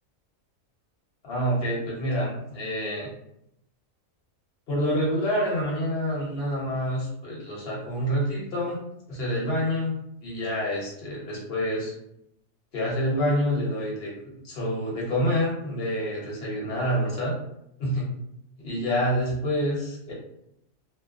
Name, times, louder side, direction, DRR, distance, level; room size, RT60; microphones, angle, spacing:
voice 1, 1.2-3.1 4.7-8.8 9.1-11.9 12.7-14.1 14.4-17.4 17.8-18.1 18.6-20.1, equal, 50° left, -4 dB, 1.1 m, -27 dB
2.8 x 2.1 x 2.4 m, 0.77 s
omnidirectional pair, 1.4 m